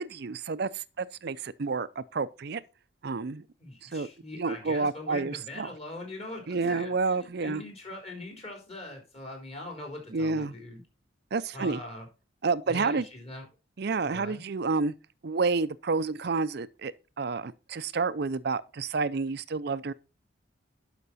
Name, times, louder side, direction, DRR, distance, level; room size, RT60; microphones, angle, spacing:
voice 1, 0.0-2.6 3.0-3.4 3.8-4.1 4.4-5.7 6.5-7.6 10.1-10.5 11.3-11.8 12.4-13.1 13.8-14.9 15.2-16.9 17.2-19.9, right 4 dB, 55° right, 0.5 m, -29 dB
voice 2, 3.6-10.8 11.5-12.1 12.7-13.5 14.0-14.4, left 2 dB, 30° left, 3.9 m, -42 dB
11.5 x 5.9 x 4.1 m
head